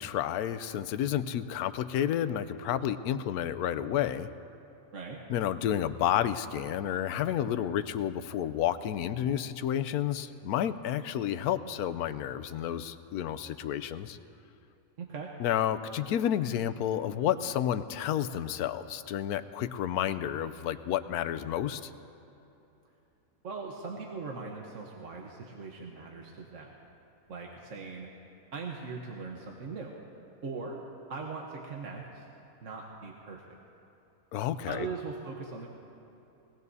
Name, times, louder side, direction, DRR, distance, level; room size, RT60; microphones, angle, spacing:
voice 1, 0.0-4.3 5.3-14.2 15.4-21.9 34.3-34.9, left 10 dB, 80° left, 13 dB, 1.1 m, -30 dB
voice 2, 15.0-15.3 23.4-26.7 27.3-28.1 28.5-29.9 30.4-30.8 31.1-32.3 32.6-33.5 34.7-35.7, right 4 dB, 55° right, 0 dB, 1.3 m, -40 dB
22.5 x 18.0 x 2.7 m, 3.0 s
omnidirectional pair, 1.6 m